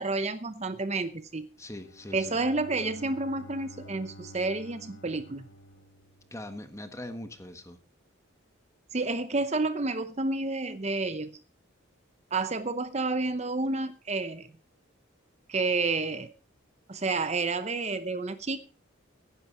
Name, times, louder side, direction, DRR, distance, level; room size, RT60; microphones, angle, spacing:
voice 1, 0.0-1.5 2.1-5.5 8.9-11.3 12.3-14.5 15.5-16.3 16.9-18.6, right 3 dB, 30° right, 11 dB, 0.7 m, -30 dB
voice 2, 1.6-2.4 6.3-7.8, left 1 dB, 15° left, 8 dB, 1.5 m, -41 dB
Bowed string instrument, 1.7-6.7, equal, 65° left, 1.2 m, -50 dB
16.0 x 10.5 x 4.3 m, 0.35 s
head